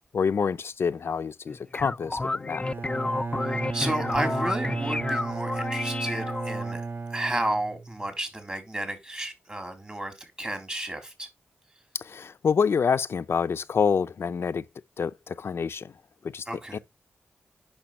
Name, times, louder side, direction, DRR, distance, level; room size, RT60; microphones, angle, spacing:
voice 1, 0.1-2.6 12.0-14.6 15.0-15.9 16.3-16.4 16.7-16.8, left 6 dB, 70° left, 0.6 m, -27 dB
sound 1, 1.5-6.7, left 2 dB, 25° left, 0.4 m, -31 dB
Bowed string instrument, 2.6-8.1, right 4 dB, 55° right, 0.6 m, -34 dB
voice 2, 3.4-6.8 7.1-11.3 16.5-16.8, right 1 dB, 25° right, 3.6 m, -32 dB
8.7 x 6.1 x 3.1 m
cardioid pair, 50°, 4 cm